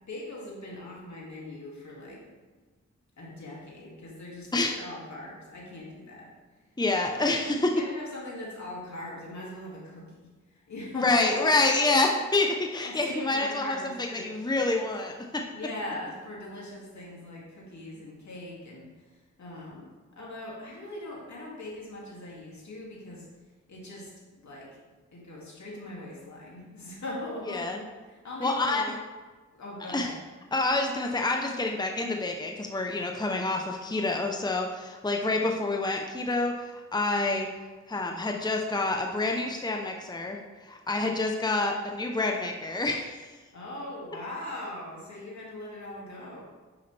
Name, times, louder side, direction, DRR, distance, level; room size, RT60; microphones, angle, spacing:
voice 1, 0.1-2.3 3.2-6.3 7.3-11.5 12.8-14.4 15.5-23.3 23.7-24.1 24.4-24.7 25.1-29.0 29.5-30.1 43.5-46.4, left 1 dB, 70° left, -4 dB, 2.6 m, -40 dB
voice 2, 6.8-7.7 10.9-13.8 14.1-15.4 27.5-27.8 28.4-28.8 29.9-30.1 30.5-37.5 37.9-43.2, left 2 dB, 15° left, 2 dB, 0.9 m, -27 dB
9.6 x 5.5 x 3.4 m, 1.3 s
cardioid pair, 45°, 29 cm